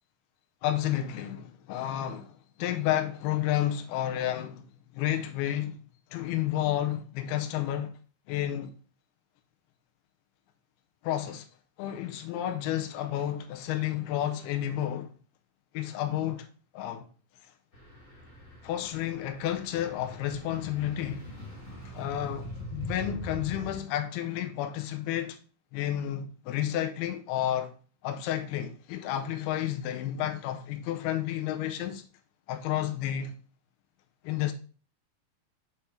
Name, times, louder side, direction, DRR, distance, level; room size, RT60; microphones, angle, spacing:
voice 1, 0.6-4.6 4.9-5.8 6.1-7.9 8.3-8.7 11.0-11.5 11.8-15.1 15.7-16.5 16.7-17.1 17.4-17.5 18.6-21.2 21.9-25.4 25.7-27.7 28.0-32.0 32.5-33.3 34.2-34.5, left 12 dB, 85° left, 2.5 m, -31 dB
sound 1, 17.7-23.7, equal, 35° left, 1.1 m, -42 dB
6.7 x 3.6 x 4.3 m
omnidirectional pair, 4.5 m